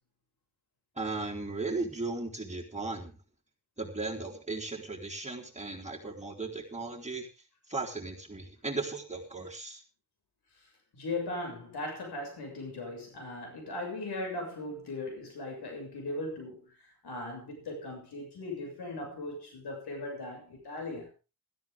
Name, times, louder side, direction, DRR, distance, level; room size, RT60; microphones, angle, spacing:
voice 1, 1.0-3.1 3.8-7.3 7.7-9.8, right 3 dB, 20° right, 4.2 m, -36 dB
voice 2, 10.9-21.1, left 2 dB, 90° left, 6.8 m, -38 dB
16.5 x 13.5 x 3.7 m
cardioid pair, 65°, 38 cm